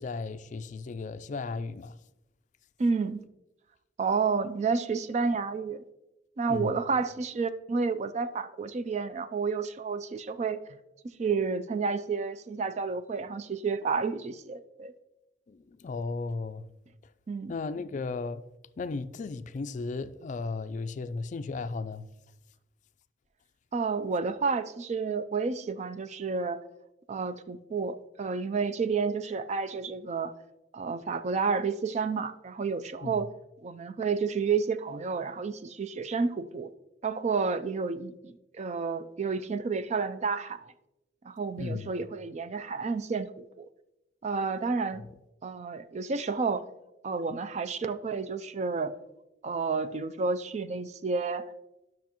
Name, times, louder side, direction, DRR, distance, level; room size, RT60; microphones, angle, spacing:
voice 1, 0.0-1.9 6.5-6.8 15.5-15.6 15.8-16.6 17.5-18.4 18.8-22.1 33.0-33.1 41.6-41.9, left 3 dB, 45° left, 0.3 m, -35 dB
voice 2, 2.8-3.2 4.0-5.8 6.4-10.6 11.2-14.9 17.3-17.5 23.7-26.6 27.1-30.3 30.7-33.3 33.6-36.7 37.0-40.7 41.2-43.7 44.2-45.0 45.4-46.6 47.0-49.0 49.4-51.5, right 4 dB, 40° right, 0.4 m, -30 dB
10.5 x 6.1 x 2.9 m
head